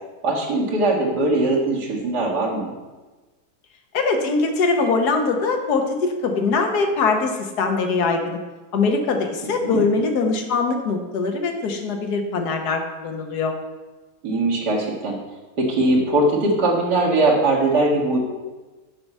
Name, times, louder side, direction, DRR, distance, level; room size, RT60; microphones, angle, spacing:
voice 1, 0.2-2.7 9.4-9.8 14.2-15.2 15.6-18.2, right 2 dB, 80° right, -2 dB, 2.3 m, -20 dB
voice 2, 3.9-8.4 8.7-13.5, left 4 dB, 75° left, 4 dB, 1.6 m, -22 dB
7.6 x 6.0 x 5.4 m, 1.2 s
omnidirectional pair, 1.7 m